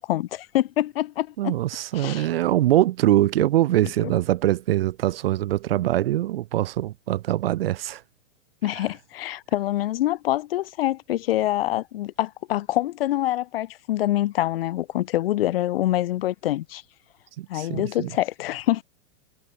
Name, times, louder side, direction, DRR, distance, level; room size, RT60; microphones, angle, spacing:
voice 1, 0.0-1.6 1.9-2.3 4.0-4.1 8.6-16.8 17.5-18.8, left 14 dB, 50° left, 4.3 m, -25 dB
voice 2, 1.4-8.0 8.7-8.8 17.4-18.1, right 14 dB, 50° right, 1.6 m, -23 dB
supercardioid pair, 180°, 37 cm